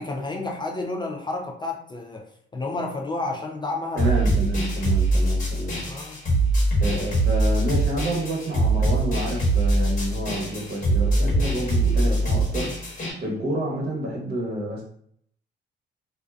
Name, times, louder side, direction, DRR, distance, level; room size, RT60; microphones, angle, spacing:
voice 1, 0.0-4.1 4.4-4.5 5.9-6.2, left 2 dB, 25° left, 1 dB, 0.3 m, -31 dB
voice 2, 3.9-5.8 6.8-12.7 13.2-14.8, right 1 dB, 50° right, -2 dB, 1.0 m, -29 dB
sound 1, 4.0-13.1, right 2 dB, 40° left, 1.2 m, -22 dB
2.6 x 2.2 x 2.3 m, 0.65 s
cardioid pair, 90°, 20 cm